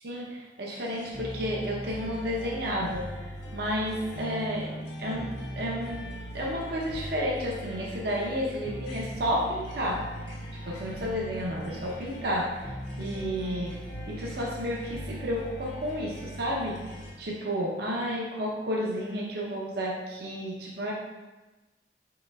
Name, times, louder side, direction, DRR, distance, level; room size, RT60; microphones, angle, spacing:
voice 1, 0.0-3.0 3.5-4.7 5.0-6.0 6.3-10.0 10.6-12.7 13.0-13.8 14.1-16.8 17.2-20.9, equal, 60° right, -3 dB, 0.7 m, -31 dB
sound 1, 0.7-17.1, equal, 70° left, 1.3 m, -39 dB
5.0 x 4.1 x 2.3 m, 1.1 s
head